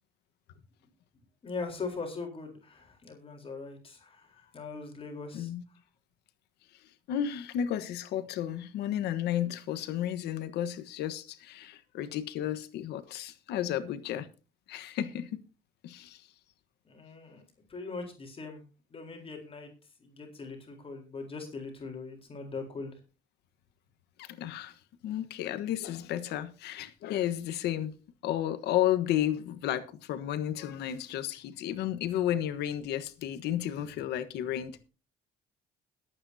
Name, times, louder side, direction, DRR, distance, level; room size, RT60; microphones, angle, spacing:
voice 1, 1.4-5.8 16.8-17.4 17.7-18.6 18.9-19.7 20.0-23.0, left 4 dB, 35° left, 4.0 m, -41 dB
voice 2, 7.1-14.3 14.7-15.3 15.8-16.2 24.2-24.8 25.0-27.9 28.2-34.8, left 11 dB, 80° left, 1.3 m, -32 dB
21.5 x 8.9 x 2.8 m
cardioid pair, 110°, 17 cm